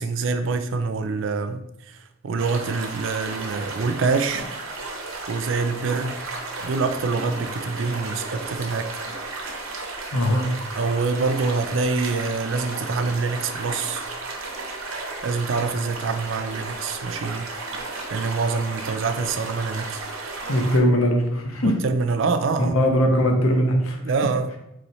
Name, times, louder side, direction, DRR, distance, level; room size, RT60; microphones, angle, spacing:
voice 1, 0.0-1.6 2.2-4.5 5.3-6.2 6.6-8.9 10.8-14.0 15.2-17.4 18.1-20.0 21.6-22.7 24.0-24.5, right 4 dB, 60° right, 8 dB, 0.4 m, -25 dB
sound 1, 2.4-20.8, right 3 dB, 85° right, 0.8 m, -34 dB
voice 2, 10.1-10.5 20.5-21.8 22.6-24.0, equal, 80° left, 2 dB, 0.8 m, -20 dB
3.1 x 3.1 x 4.0 m, 0.85 s
head